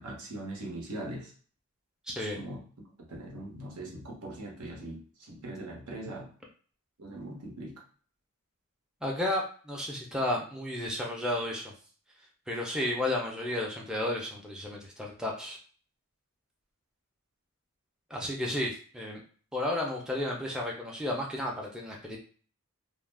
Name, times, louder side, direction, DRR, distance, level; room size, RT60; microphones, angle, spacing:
voice 1, 0.0-1.3 2.4-6.3 7.0-7.8, right 1 dB, 80° right, 0 dB, 0.9 m, -41 dB
voice 2, 2.0-2.4 9.0-11.7 12.5-15.6 18.1-19.2 19.5-22.2, left 1 dB, 5° right, -2 dB, 0.4 m, -32 dB
2.3 x 2.1 x 3.3 m, 0.43 s
head